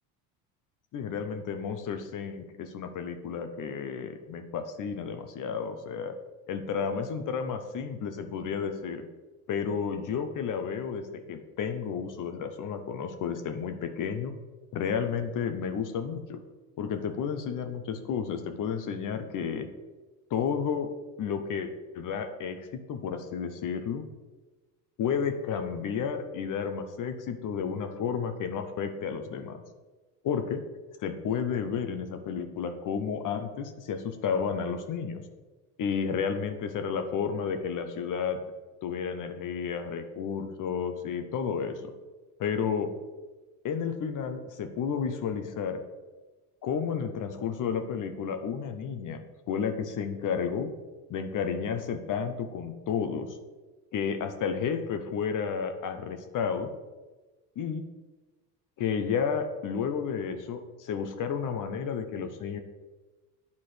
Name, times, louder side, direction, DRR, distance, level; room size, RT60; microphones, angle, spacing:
voice 1, 0.9-6.2 6.5-9.0 9.5-14.3 14.7-16.4 16.8-19.7 20.3-20.9 21.2-24.1 25.0-29.6 30.2-30.6 31.0-35.2 35.8-38.4 38.8-41.9 42.4-42.9 43.6-45.8 46.6-49.2 49.5-50.7 51.1-53.4 53.9-56.7 57.6-57.9 58.8-62.6, left 6 dB, 45° left, 8 dB, 0.7 m, -32 dB
9.5 x 4.2 x 3.2 m, 1.2 s
supercardioid pair, 80°, 45 cm